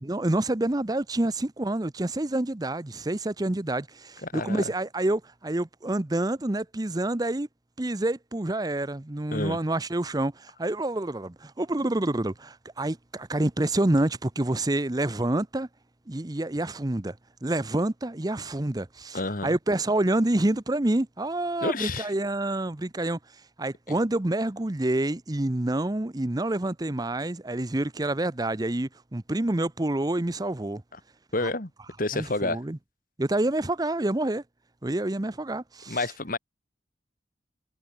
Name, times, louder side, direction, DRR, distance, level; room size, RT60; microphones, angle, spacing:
voice 1, 0.0-7.5 7.8-15.7 16.1-17.2 17.4-23.2 23.6-30.8 31.4-31.5 32.1-32.8 33.2-34.4 34.8-36.1, right 1 dB, 20° right, 0.8 m, -27 dB
voice 2, 4.2-4.7 9.3-9.6 19.1-19.6 21.6-22.1 31.3-31.7 32.0-32.6 35.9-36.4, left 2 dB, 50° left, 2.5 m, -29 dB
head